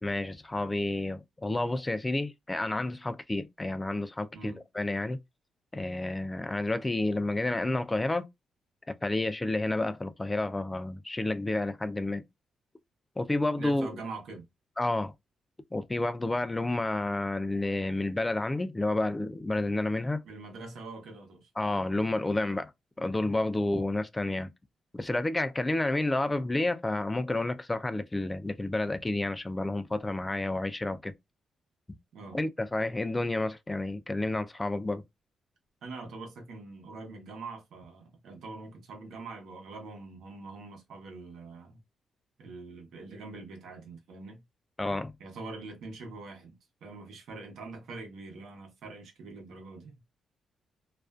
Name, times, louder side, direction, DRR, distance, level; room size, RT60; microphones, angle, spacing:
voice 1, 0.0-5.2 5.7-8.3 8.9-12.2 13.2-13.9 14.8-15.1 15.7-20.2 21.6-22.7 23.0-24.5 24.9-31.1 32.3-35.0 44.8-45.1, left 2 dB, 20° left, 0.3 m, -30 dB
voice 2, 13.5-14.4 20.2-21.5 32.1-32.4 35.8-41.8 42.4-44.4 45.2-50.0, right 3 dB, 80° right, 0.8 m, -44 dB
2.4 x 2.2 x 2.3 m
cardioid pair, 85°, 0 cm